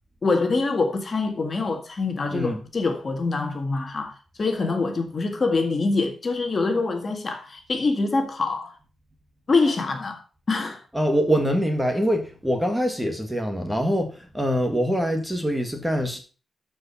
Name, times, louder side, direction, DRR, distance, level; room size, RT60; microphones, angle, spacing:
voice 1, 0.2-8.7 9.5-10.2 10.5-10.8, left 3 dB, 40° left, 1.8 m, -25 dB
voice 2, 2.3-2.7 10.9-16.2, equal, 5° right, 1.8 m, -24 dB
13.0 x 5.1 x 5.7 m
wide cardioid pair, 140°, 0 cm